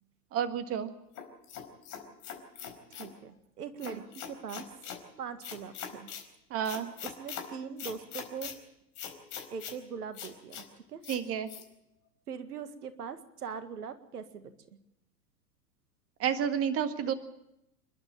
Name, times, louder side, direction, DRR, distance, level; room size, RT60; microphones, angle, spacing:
voice 1, 0.3-0.9 3.8-3.9 6.5-6.9 11.1-11.5 16.2-17.1, right 8 dB, 30° right, 9 dB, 1.8 m, -30 dB
sound 1, 1.2-3.1 3.8-5.0 5.4-6.3 6.6-7.5 7.8-8.5 9.0-9.8 10.1-10.6 11.0-11.2 11.5-11.6, left 8 dB, 35° left, 4.5 m, -42 dB
voice 2, 3.0-4.7 5.2-6.1 7.0-8.5 9.5-10.6 10.9-11.0 12.3-14.5, right 6 dB, 70° right, 10 dB, 2.0 m, -41 dB
27.5 x 12.0 x 8.9 m, 0.83 s
figure-of-eight pair, 100°, 48 cm